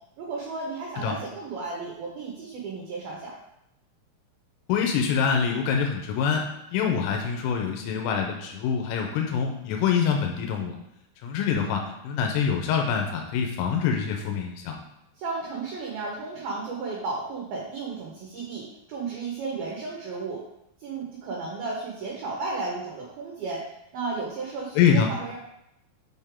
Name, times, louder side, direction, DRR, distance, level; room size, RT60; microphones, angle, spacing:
voice 1, 0.2-3.3 15.2-20.4 20.8-23.7 23.9-25.4, right 3 dB, 70° right, -2 dB, 2.3 m, -33 dB
voice 2, 4.7-6.5 6.7-10.8 11.2-14.8 24.8-25.1, left 7 dB, 90° left, 2 dB, 3.5 m, -25 dB
7.8 x 6.6 x 3.6 m, 0.82 s
omnidirectional pair, 5.7 m